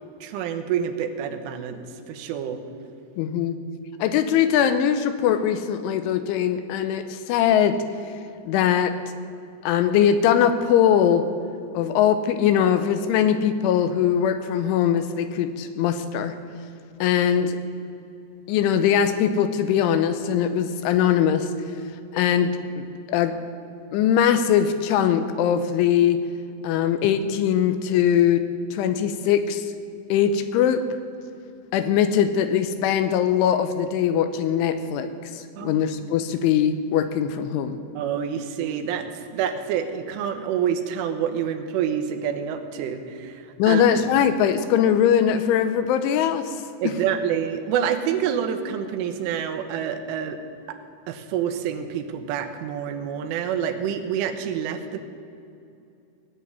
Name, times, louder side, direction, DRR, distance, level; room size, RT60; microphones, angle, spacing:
voice 1, 0.2-2.6 35.6-35.8 38.0-43.8 46.8-50.4 50.7-50.8 51.1-55.0, right 8 dB, 80° right, 7 dB, 3.3 m, -27 dB
voice 2, 3.2-3.6 4.0-7.8 8.5-8.9 9.6-11.2 11.7-16.3 17.0-17.6 18.5-21.5 22.1-22.5 22.8-23.3 23.9-26.2 26.6-28.4 28.7-29.7 30.1-30.8 31.7-37.8 43.6-46.6 46.8-46.9, left 9 dB, 85° left, 10 dB, 3.0 m, -21 dB
18.0 x 7.6 x 9.6 m, 2.6 s
omnidirectional pair, 5.8 m